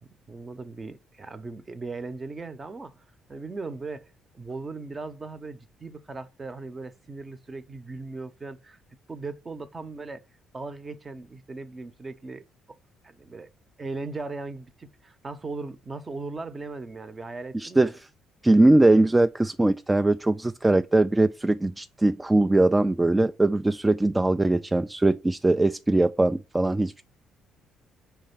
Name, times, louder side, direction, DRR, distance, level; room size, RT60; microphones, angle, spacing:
voice 1, 0.0-3.0 3.3-8.8 9.1-10.2 10.5-12.4 13.0-13.5 13.8-17.9, right 3 dB, 30° right, 0.8 m, -38 dB
voice 2, 17.5-17.9 18.4-27.0, right 2 dB, 15° right, 0.3 m, -21 dB
4.9 x 3.5 x 5.5 m
hypercardioid pair, 55°, 0 cm